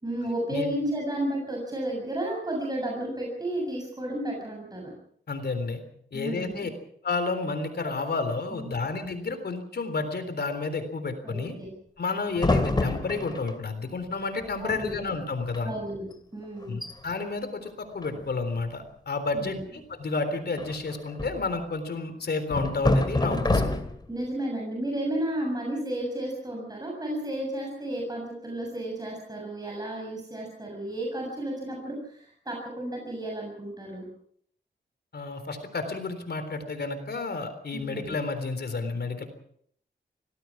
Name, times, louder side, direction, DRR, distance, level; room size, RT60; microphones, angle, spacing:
voice 1, 0.0-5.0 6.1-6.7 8.5-8.7 11.2-11.7 14.6-15.0 15.6-16.1 16.3-16.8 19.3-19.6 24.1-34.1 37.7-38.1, right 1 dB, 20° right, -1 dB, 7.2 m, -32 dB
voice 2, 5.3-5.8 6.1-6.7 7.0-11.6 12.0-15.7 16.7-23.7 35.1-39.2, left 3 dB, 60° left, 9 dB, 3.7 m, -31 dB
sound 1, 12.3-13.5 14.4-14.5 14.7-15.1 15.4-15.6 16.1-16.2 16.6-16.9 18.0-18.6 20.6-21.5 22.5-24.1, left 2 dB, 25° left, 2.8 m, -27 dB
25.0 x 18.5 x 6.1 m, 0.65 s
wide cardioid pair, 105°, 18 cm